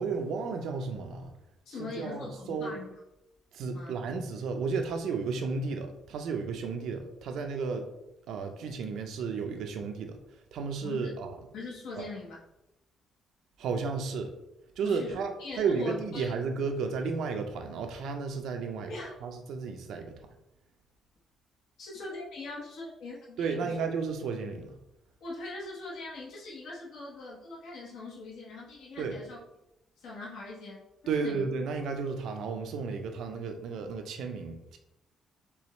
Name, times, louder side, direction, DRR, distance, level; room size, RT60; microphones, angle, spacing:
voice 1, 0.0-1.3 1.8-2.7 3.5-7.9 8.3-11.3 12.0-12.1 13.6-14.3 14.8-20.3 23.4-24.7 29.0-29.2 31.1-34.8, right 5 dB, 70° right, 5 dB, 0.6 m, -33 dB
voice 2, 1.7-2.9 3.7-4.0 10.8-11.1 11.5-12.4 14.8-16.4 18.9-19.1 21.8-23.8 25.2-29.4 30.0-31.4, left 3 dB, 80° left, -5 dB, 1.0 m, -41 dB
4.7 x 3.0 x 3.1 m, 0.90 s
cardioid pair, 155°, 0 cm